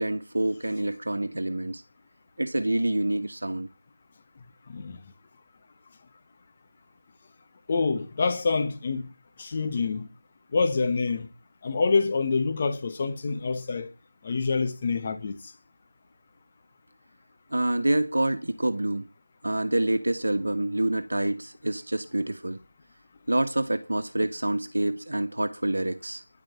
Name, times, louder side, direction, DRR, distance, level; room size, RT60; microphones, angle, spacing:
voice 1, 0.0-1.8 2.4-3.7 17.5-19.1 19.4-22.6 23.3-26.2, right 1 dB, 65° right, 1.5 m, -27 dB
voice 2, 7.7-9.1 9.4-10.1 10.5-11.3 11.6-13.9 14.2-15.4, left 4 dB, 20° left, 1.2 m, -26 dB
10.5 x 7.7 x 8.1 m
figure-of-eight pair, 170°, 0 cm